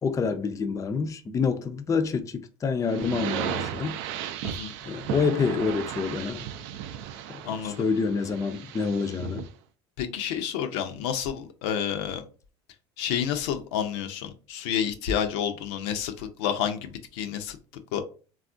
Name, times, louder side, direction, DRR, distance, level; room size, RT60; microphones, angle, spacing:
voice 1, 0.0-4.0 4.8-6.5 7.3-9.4, left 5 dB, 20° left, 0.4 m, -27 dB
sound 1, 2.9-9.5, right 10 dB, 70° right, 0.4 m, -35 dB
voice 2, 7.4-7.9 10.0-12.2 13.0-17.6 17.9-18.0, left 8 dB, 75° left, 0.5 m, -29 dB
3.4 x 2.4 x 2.5 m
hypercardioid pair, 85°, 14 cm